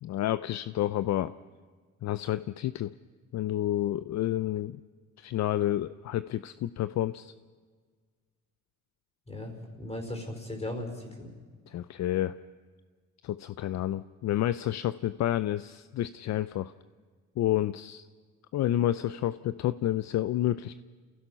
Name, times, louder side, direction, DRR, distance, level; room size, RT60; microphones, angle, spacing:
voice 1, 0.0-1.3 2.0-2.9 3.3-4.8 5.2-7.3 11.7-12.4 13.2-16.7 17.4-18.0 18.5-20.8, left 13 dB, 65° left, 14 dB, 0.5 m, -29 dB
voice 2, 9.3-11.3, left 1 dB, 20° left, 4 dB, 4.8 m, -37 dB
29.0 x 16.0 x 5.7 m, 1.5 s
cardioid pair, 90°, 30 cm